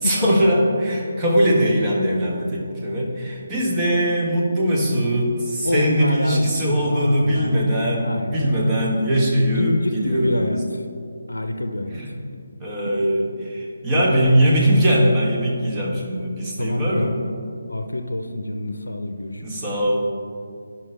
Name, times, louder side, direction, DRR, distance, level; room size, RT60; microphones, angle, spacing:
voice 1, 0.0-10.5 11.9-12.1 12.6-17.1 19.4-20.0, equal, 15° right, -4 dB, 1.4 m, -21 dB
voice 2, 5.6-7.7 8.0-8.7 9.5-10.8 11.3-12.0 13.9-14.0 16.6-17.3 17.7-19.4, left 1 dB, 85° left, 6 dB, 0.6 m, -26 dB
11.0 x 5.7 x 3.4 m, 2.4 s
figure-of-eight pair, 150°, 0 cm